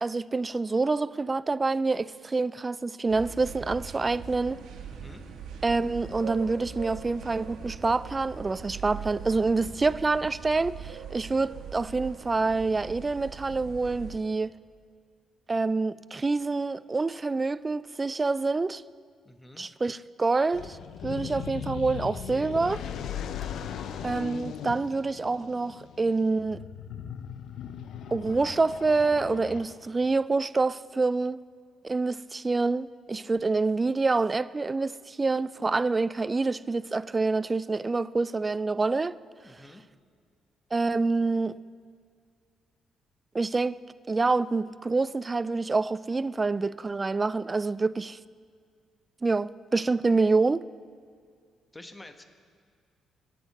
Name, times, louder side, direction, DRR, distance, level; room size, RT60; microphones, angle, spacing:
voice 1, 0.0-4.6 5.6-14.5 15.5-18.8 19.6-20.8 21.0-22.8 24.0-26.6 28.1-31.4 31.8-39.2 40.7-41.6 43.3-43.8 44.1-48.2 49.2-50.6, right 3 dB, 25° right, 0.3 m, -27 dB
sound 1, 3.1-14.2, right 7 dB, 85° right, 1.3 m, -41 dB
voice 2, 4.9-5.3 19.2-19.7 39.4-39.8 51.7-52.2, left 1 dB, 15° left, 1.1 m, -48 dB
sound 2, 20.5-30.0, left 8 dB, 75° left, 0.6 m, -38 dB
22.0 x 8.4 x 4.2 m
cardioid pair, 90°, 0 cm